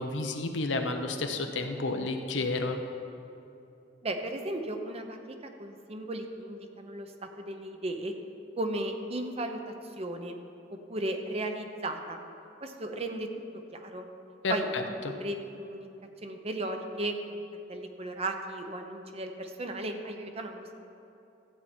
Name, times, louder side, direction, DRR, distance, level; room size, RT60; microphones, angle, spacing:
voice 1, 0.0-2.8 14.4-15.1, left 2 dB, 90° left, 5 dB, 0.9 m, -31 dB
voice 2, 4.0-5.2 5.6-8.1 8.6-10.4 10.9-12.2 12.6-13.3 13.7-14.1 14.5-14.7 15.2-15.9 16.2-17.4 17.7-20.8, right 1 dB, 35° right, 5 dB, 0.8 m, -35 dB
14.0 x 8.6 x 4.4 m, 2.8 s
head